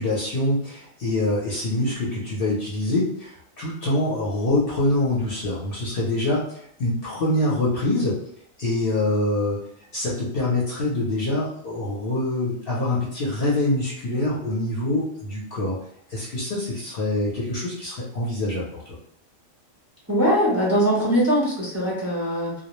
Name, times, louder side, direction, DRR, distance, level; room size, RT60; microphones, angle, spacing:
voice 1, 0.0-8.2 8.6-9.6 9.9-15.8 16.1-19.0, left 1 dB, 55° left, -5 dB, 0.7 m, -25 dB
voice 2, 20.1-22.6, equal, 15° right, -6 dB, 0.6 m, -21 dB
2.2 x 2.0 x 3.0 m, 0.67 s
omnidirectional pair, 1.4 m